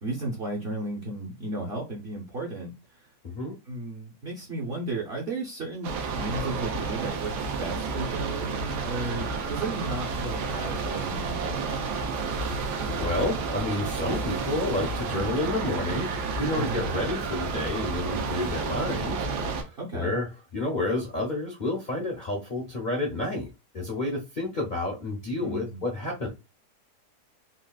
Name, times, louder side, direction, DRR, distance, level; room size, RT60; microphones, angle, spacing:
voice 1, 0.0-2.7 3.7-7.3 7.6-11.7 16.5-16.9 19.8-20.1 25.4-25.8, right 2 dB, 55° right, 0.7 m, -34 dB
voice 2, 3.2-3.5 12.4-12.7 13.0-16.1 16.4-23.5 23.7-26.3, left 2 dB, 70° left, 0.4 m, -30 dB
sound 1, 5.8-19.6, right 4 dB, 80° right, 1.2 m, -31 dB
3.6 x 2.4 x 2.3 m
omnidirectional pair, 1.8 m